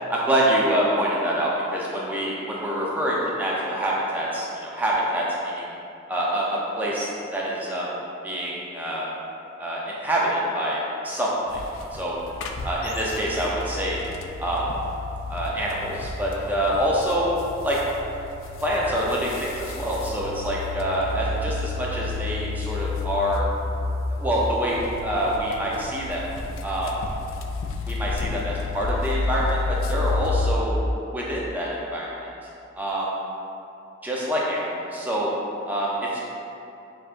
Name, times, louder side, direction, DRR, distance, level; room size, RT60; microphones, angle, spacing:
voice 1, 0.1-5.6 6.1-7.9 8.2-9.1 9.6-11.6 11.9-12.2 12.6-14.0 14.4-14.6 15.3-17.3 17.6-17.8 18.1-18.2 18.6-23.4 24.1-26.2 26.6-26.9 27.9-30.8 31.1-32.1 32.8-33.1 34.0-35.3 35.7-36.2, equal, 10° right, -5 dB, 0.5 m, -26 dB
sound 1, 11.5-30.6, left 3 dB, 75° left, 0.3 m, -31 dB
5.4 x 2.7 x 2.5 m, 2.8 s
head